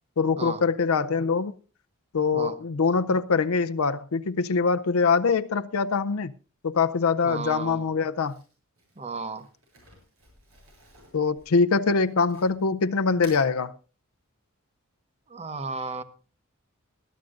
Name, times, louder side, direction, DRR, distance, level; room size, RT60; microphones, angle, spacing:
voice 1, 0.2-1.5 2.1-6.3 6.6-8.4 11.1-13.7, left 4 dB, 80° left, 0.6 m, -23 dB
voice 2, 7.2-7.9 9.0-9.5 15.3-16.0, right 4 dB, 30° right, 0.9 m, -34 dB
Crumpling crinkling, 8.1-12.7 13.1-13.5, right 2 dB, 70° right, 7.7 m, -53 dB
21.5 x 13.0 x 2.5 m
head